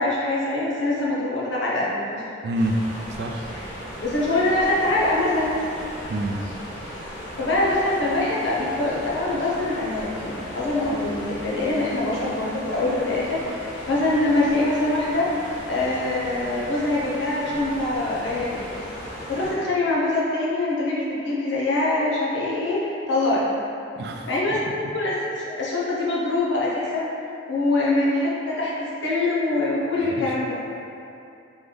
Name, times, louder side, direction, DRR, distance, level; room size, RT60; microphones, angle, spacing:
voice 1, 0.0-2.2 3.5-3.6 4.0-5.5 7.4-15.3 15.7-18.8 19.3-23.5 24.3-27.1 27.5-30.6, left 2 dB, 85° left, -6 dB, 1.0 m, -24 dB
voice 2, 2.4-2.8 3.1-3.5 6.1-6.4 24.0-24.6 30.2-30.3, right 1 dB, 60° right, 3 dB, 0.3 m, -27 dB
sound 1, 2.5-19.5, equal, 45° left, 1.4 m, -37 dB
3.5 x 3.3 x 3.9 m, 2.7 s
head